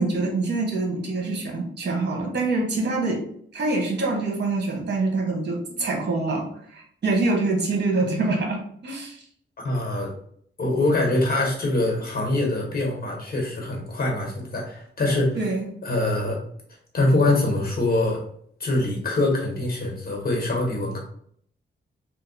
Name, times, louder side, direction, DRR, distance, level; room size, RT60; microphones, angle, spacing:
voice 1, 0.0-3.2 3.5-9.2 15.3-15.7, right 3 dB, 60° right, 0 dB, 1.1 m, -25 dB
voice 2, 9.6-10.1 10.6-15.4 15.8-16.4 16.9-18.2 18.6-21.0, left 2 dB, 50° left, 0 dB, 1.3 m, -24 dB
2.8 x 2.4 x 4.0 m, 0.64 s
cardioid pair, 85°, 20 cm